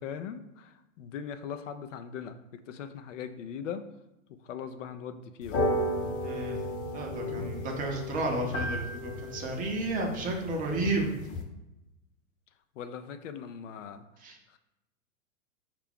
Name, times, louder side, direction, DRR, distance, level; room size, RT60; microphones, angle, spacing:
voice 1, 0.0-3.9 4.4-5.7 12.8-14.6, left 7 dB, 65° left, 9 dB, 0.5 m, -40 dB
sound 1, 5.4-11.4, left 1 dB, 40° left, 0.8 m, -34 dB
voice 2, 6.2-6.6 6.9-11.1 14.2-14.4, right 2 dB, 20° right, 1 dB, 0.6 m, -32 dB
4.4 x 2.4 x 3.5 m, 0.94 s
hypercardioid pair, 105°, 40 cm